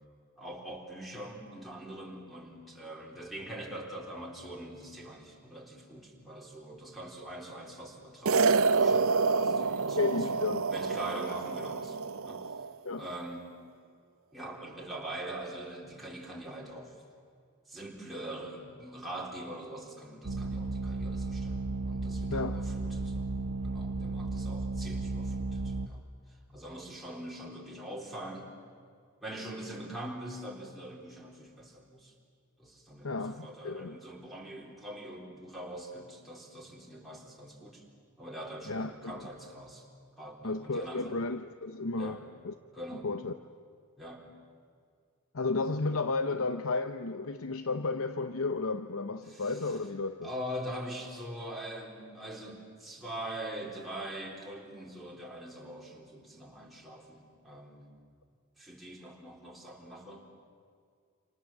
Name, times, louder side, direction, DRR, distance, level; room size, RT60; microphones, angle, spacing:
voice 1, 0.4-10.2 10.7-12.5 13.0-13.5 14.3-16.9 17.7-23.3 23.6-26.0 26.3-28.5 29.2-32.1 32.6-37.8 38.2-39.9 40.2-41.2 42.0-42.2 42.7-43.1 44.0-44.2 49.3-49.6 50.2-57.9 58.6-60.3, right 1 dB, ahead, -3 dB, 3.9 m, -43 dB
sound 1, 8.3-12.7, right 4 dB, 65° right, 0.6 m, -28 dB
voice 2, 10.0-10.7 12.8-13.1 22.3-22.6 33.0-34.0 38.7-39.3 40.4-42.2 42.4-42.5 43.0-43.3 45.3-50.3, left 3 dB, 65° left, 9 dB, 0.8 m, -33 dB
sound 2, 20.2-25.9, right 3 dB, 90° right, 0.9 m, -34 dB
29.0 x 27.0 x 7.4 m, 2.2 s
head